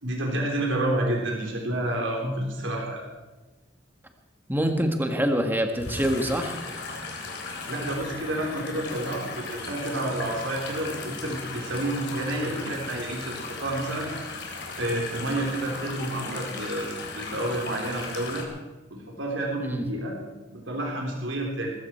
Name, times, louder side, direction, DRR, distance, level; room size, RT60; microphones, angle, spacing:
voice 1, 0.0-3.0 7.7-14.1 14.7-18.4 18.9-20.2 20.5-21.7, right 1 dB, 85° right, -1 dB, 3.6 m, -29 dB
voice 2, 4.5-6.6 19.6-19.8, equal, 10° right, 5 dB, 1.7 m, -25 dB
sound 1, 5.8-18.4, left 3 dB, 60° left, 3.6 m, -37 dB
20.0 x 15.5 x 4.6 m, 1.2 s
head